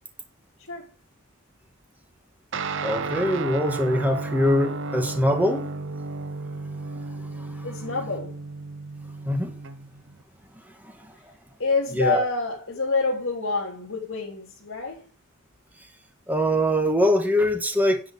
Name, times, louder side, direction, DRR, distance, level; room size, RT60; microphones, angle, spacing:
Guitar, 2.5-10.2, right 3 dB, 60° right, 0.8 m, -33 dB
voice 1, 2.8-5.7 6.9-7.7 9.2-9.5 10.6-11.2 11.9-12.2 16.3-18.0, equal, 10° right, 1.5 m, -23 dB
voice 2, 7.6-8.4 11.6-15.1, left 3 dB, 60° left, 3.2 m, -27 dB
10.5 x 5.0 x 7.0 m
head